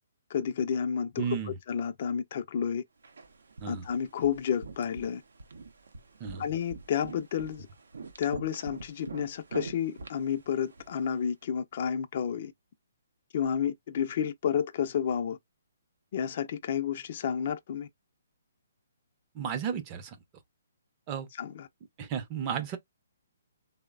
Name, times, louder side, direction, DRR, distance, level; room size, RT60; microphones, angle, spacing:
voice 1, 0.3-2.8 3.7-5.2 6.4-7.7 8.2-12.5 13.3-15.4 16.1-17.9 21.4-21.7, left 8 dB, 50° left, 0.4 m, -31 dB
voice 2, 1.2-1.6 3.6-3.9 6.2-6.4 19.3-20.2 21.1-21.3 22.0-22.8, right 7 dB, 30° right, 0.5 m, -33 dB
sound 1, 3.0-11.2, right 4 dB, 80° right, 0.6 m, -45 dB
3.1 x 2.0 x 2.2 m
hypercardioid pair, 145°, 0 cm